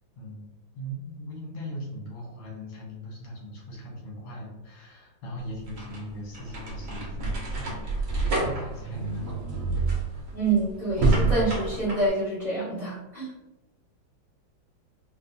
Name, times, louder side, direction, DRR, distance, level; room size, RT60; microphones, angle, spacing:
voice 1, 0.2-0.5 0.7-9.4, equal, 85° left, -3 dB, 1.9 m, -39 dB
sound 1, 5.4-12.1, right 3 dB, 65° right, 0.8 m, -28 dB
voice 2, 10.3-13.3, right 2 dB, 30° right, -8 dB, 0.7 m, -27 dB
4.3 x 2.2 x 2.6 m, 0.98 s
omnidirectional pair, 2.2 m